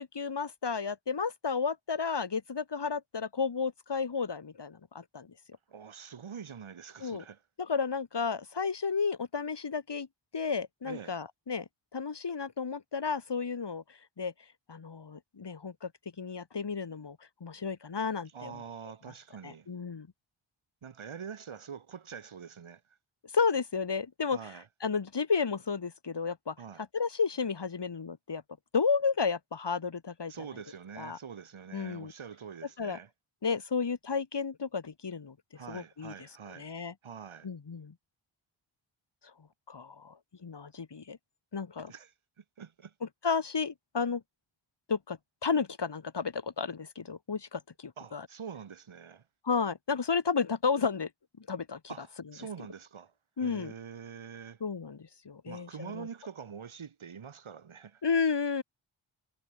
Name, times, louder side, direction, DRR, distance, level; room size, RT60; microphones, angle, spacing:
voice 1, 0.0-5.3 7.0-7.2 7.6-10.1 10.3-14.3 14.7-15.9 16.2-18.6 19.4-20.1 23.3-26.5 26.9-28.4 28.7-30.3 31.0-31.2 31.7-32.1 32.8-33.0 33.4-35.3 35.7-36.1 36.5-36.9 37.4-37.9 39.7-41.2 41.5-41.9 43.0-44.2 44.9-48.3 49.4-51.1 51.4-52.1 53.4-53.7 54.6-56.1 58.0-58.6, left 5 dB, 55° left, 4.5 m, -32 dB
voice 2, 5.7-7.4 10.8-11.2 18.3-19.7 20.8-22.8 24.3-24.6 26.6-26.8 30.3-33.1 35.5-36.7 37.0-37.5 41.9-42.1 42.4-42.9 48.0-49.2 51.9-53.1 53.4-54.6 55.5-58.0, right 7 dB, 70° right, 3.3 m, -45 dB
wide cardioid pair, 90°, 50 cm